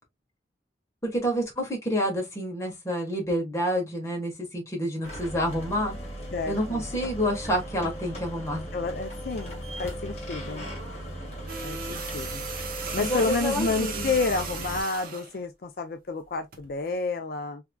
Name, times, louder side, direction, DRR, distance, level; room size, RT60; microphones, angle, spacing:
voice 1, 1.0-6.0 6.5-8.6 13.0-14.1, equal, 15° left, 1.4 m, -28 dB
sound 1, 5.0-14.8, equal, 35° left, 1.7 m, -37 dB
voice 2, 6.3-6.8 8.7-10.6 11.6-12.5 12.9-17.6, left 4 dB, 55° left, 0.4 m, -30 dB
sound 2, 11.5-15.3 16.5-16.7, right 5 dB, 50° right, 0.7 m, -36 dB
3.5 x 3.4 x 2.2 m
head